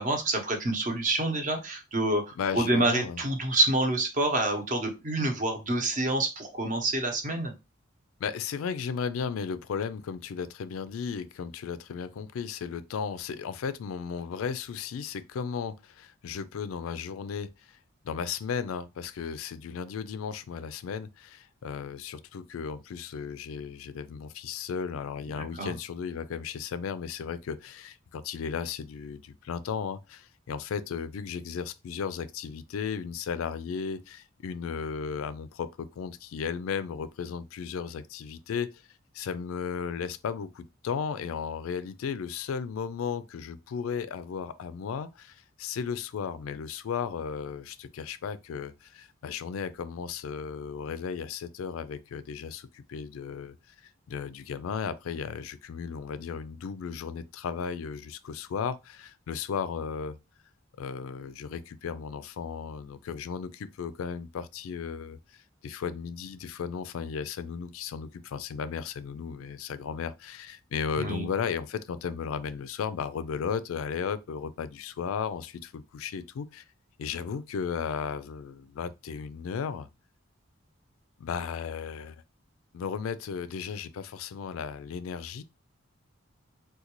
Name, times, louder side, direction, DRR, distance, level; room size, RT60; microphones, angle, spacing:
voice 1, 0.0-7.5 25.6-25.7 70.9-71.3, right 2 dB, 40° right, 0.7 m, -27 dB
voice 2, 2.4-3.2 8.2-17.8 18.0-38.8 39.1-53.5 54.1-60.2 60.8-76.6 77.0-79.9 81.2-82.2 82.7-85.4, left 6 dB, 90° left, 0.3 m, -35 dB
3.8 x 2.2 x 2.9 m
head